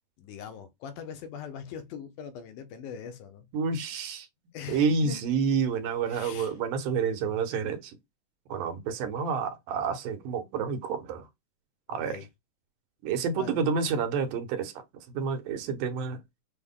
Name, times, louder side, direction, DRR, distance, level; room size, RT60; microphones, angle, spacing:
voice 1, 0.2-3.5 4.5-5.2 6.1-6.5 11.9-12.3 13.3-13.7, left 7 dB, 80° left, 2.2 m, -41 dB
voice 2, 3.5-4.3 4.7-8.0 8.5-11.3 11.9-12.2 13.0-16.2, right 5 dB, 85° right, 2.4 m, -29 dB
6.2 x 2.1 x 3.6 m
omnidirectional pair, 3.6 m